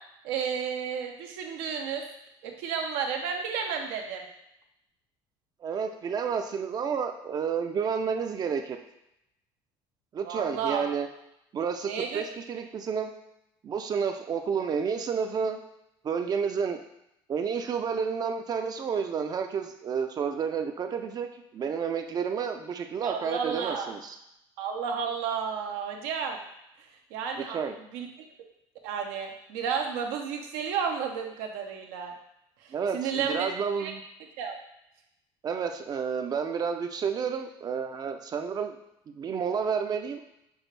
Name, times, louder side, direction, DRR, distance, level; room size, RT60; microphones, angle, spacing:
voice 1, 0.2-2.0 2.4-4.3 10.2-10.8 11.9-12.2 23.0-23.9 24.6-26.4 26.8-27.6 27.9-28.1 28.8-32.1 32.6-33.5 33.8-33.9 34.4-34.5, right 7 dB, 90° right, 2 dB, 0.7 m, -32 dB
voice 2, 5.6-8.8 10.1-11.1 11.5-13.1 13.6-15.6 16.0-16.8 17.3-24.2 27.4-27.8 32.7-34.0 35.4-38.8 39.1-40.2, right 6 dB, 40° right, 6 dB, 0.5 m, -30 dB
6.1 x 2.4 x 3.2 m, 0.82 s
cardioid pair, 105°, 11 cm